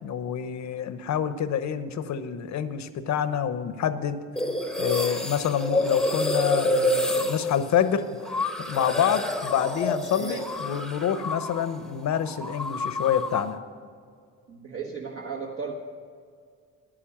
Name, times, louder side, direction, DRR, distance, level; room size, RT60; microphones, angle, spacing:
voice 1, 0.0-4.2 4.8-8.1 8.7-13.6, left 9 dB, 65° left, 12 dB, 0.9 m, -27 dB
sound 1, 4.4-11.8 12.0-13.6, left 1 dB, ahead, 1.0 m, -28 dB
voice 2, 14.5-15.7, right 6 dB, 45° right, -1 dB, 1.3 m, -35 dB
10.0 x 9.9 x 7.3 m, 2.1 s
cardioid pair, 90°, 30 cm